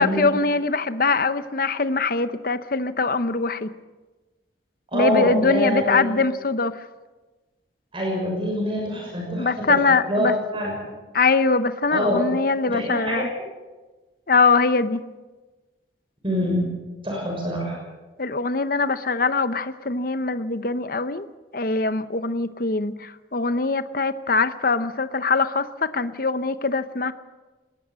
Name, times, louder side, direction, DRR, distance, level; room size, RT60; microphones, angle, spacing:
voice 1, 0.0-3.7 4.9-6.8 9.4-10.3 11.1-13.3 14.3-15.0 18.2-21.3 21.5-27.1, left 4 dB, 55° left, 12 dB, 0.9 m, -22 dB
voice 2, 4.9-6.0 7.9-10.8 11.9-12.2 12.7-13.3 16.2-16.7 17.0-17.8, left 1 dB, 30° right, -1 dB, 6.3 m, -25 dB
20.5 x 18.5 x 7.6 m, 1.2 s
head